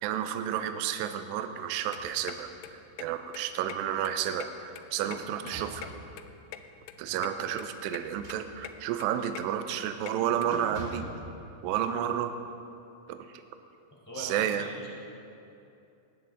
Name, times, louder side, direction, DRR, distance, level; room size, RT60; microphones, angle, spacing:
voice 1, 0.0-5.9 7.0-11.1 11.6-12.3 13.1-13.4 14.2-14.7, right 10 dB, 85° right, 8 dB, 2.5 m, -31 dB
sound 1, 1.7-10.5, left 11 dB, 85° left, 3.1 m, -46 dB
sound 2, 1.8-2.6 3.0-3.1 4.6-5.9 8.0-8.9 9.4-9.6 9.9-10.1 10.5-11.2, right 3 dB, 55° right, 3.7 m, -45 dB
voice 2, 14.1-14.9, equal, 5° left, -5 dB, 3.1 m, -42 dB
18.5 x 17.0 x 4.0 m, 2.7 s
omnidirectional pair, 5.6 m